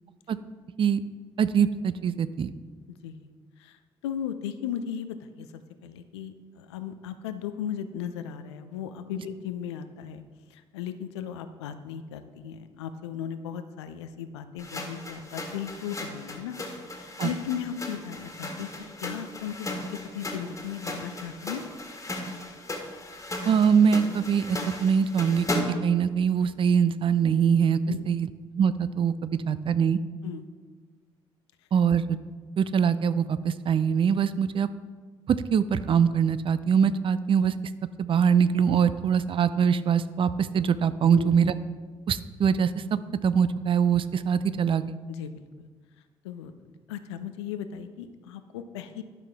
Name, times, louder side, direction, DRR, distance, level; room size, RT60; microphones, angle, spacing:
voice 1, 1.4-2.5 17.2-17.3 23.5-25.5 25.8-27.8 28.1-28.3 28.6-30.0 31.7-32.2 32.6-34.7 35.3-37.5 38.0-41.5 42.1-42.8 43.2-44.9, right 7 dB, 40° right, 14 dB, 0.4 m, -23 dB
voice 2, 2.9-3.3 3.6-3.8 4.0-10.2 10.5-16.6 16.9-18.7 19.0-21.6 27.9-28.1 30.2-30.4 41.1-41.4 45.1-45.7 46.2-49.0, left 9 dB, 75° left, 10 dB, 0.5 m, -36 dB
sound 1, 14.6-25.9, left 1 dB, 20° left, 1.6 m, -36 dB
11.5 x 5.7 x 3.5 m, 1.4 s
figure-of-eight pair, 45°, 14 cm